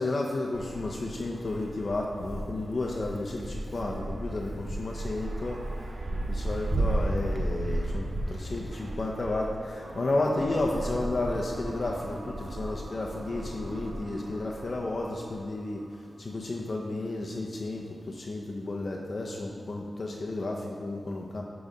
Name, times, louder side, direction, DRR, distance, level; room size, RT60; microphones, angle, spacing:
voice 1, 0.0-5.9 6.3-15.8 16.2-21.4, left 2 dB, 45° left, -1 dB, 0.7 m, -32 dB
Wind, 0.5-15.4, right 1 dB, 50° right, 0.7 m, -35 dB
sound 1, 9.8-17.4, right 1 dB, 70° right, 1.2 m, -46 dB
10.5 x 4.0 x 5.2 m, 2.2 s
wide cardioid pair, 130°, 0 cm